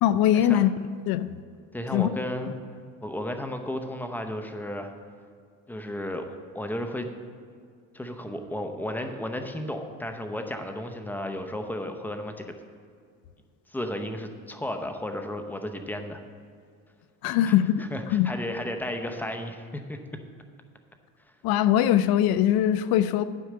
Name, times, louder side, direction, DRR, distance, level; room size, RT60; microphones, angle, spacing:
voice 1, 0.0-0.7 1.1-1.3 1.9-2.1 17.2-18.3 21.4-23.2, left 11 dB, 65° left, 14 dB, 0.6 m, -22 dB
voice 2, 1.7-2.6 3.0-4.9 5.7-7.1 7.9-12.5 13.7-16.2 17.2-17.5 17.9-20.0, left 1 dB, 5° left, 6 dB, 0.7 m, -33 dB
11.5 x 4.8 x 7.5 m, 2.2 s
cardioid pair, 130°, 39 cm